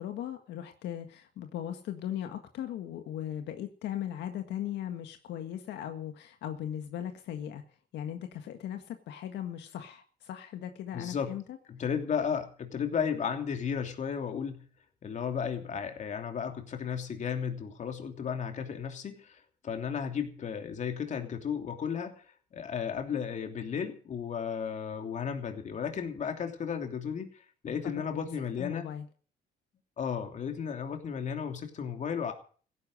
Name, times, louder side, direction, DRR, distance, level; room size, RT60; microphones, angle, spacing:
voice 1, 0.0-7.6 7.9-11.6 12.9-13.0 27.8-28.3 28.6-29.0, left 10 dB, 80° left, 6 dB, 1.6 m, -38 dB
voice 2, 10.9-11.4 11.7-14.6 15.0-22.2 22.5-28.9 30.0-32.3, left 7 dB, 45° left, 5 dB, 3.1 m, -34 dB
16.5 x 10.5 x 7.8 m, 0.42 s
cardioid pair, 135°, 18 cm